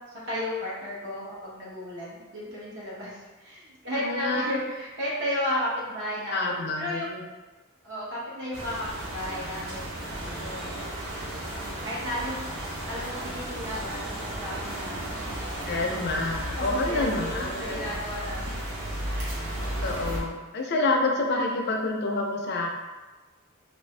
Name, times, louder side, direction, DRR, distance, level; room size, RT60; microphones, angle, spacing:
voice 1, 0.1-7.1 7.8-9.9 10.2-11.4 11.8-12.4 12.9-15.7 16.6-18.5 21.3-21.4, left 1 dB, 55° right, -7 dB, 1.0 m, -34 dB
voice 2, 4.0-4.5 6.3-7.2 15.6-17.8 19.6-22.7, left 2 dB, 50° left, 1 dB, 0.4 m, -28 dB
sound 1, 8.5-20.2, right 1 dB, 85° right, 1.0 m, -34 dB
2.9 x 2.5 x 3.2 m, 1.2 s
head